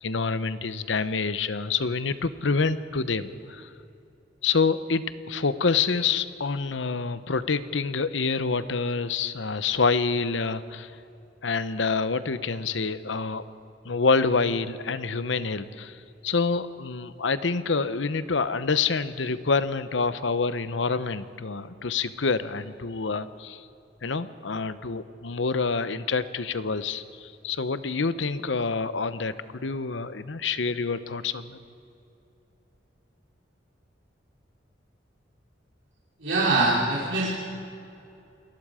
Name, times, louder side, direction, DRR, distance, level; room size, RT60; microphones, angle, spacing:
voice 1, 0.0-3.7 4.4-10.9 11.4-13.4 13.8-23.7 24.0-31.6, left 4 dB, 75° left, 13 dB, 0.8 m, -27 dB
voice 2, 36.2-37.3, right 2 dB, 85° right, -6 dB, 3.2 m, -23 dB
27.5 x 19.5 x 5.0 m, 2.7 s
head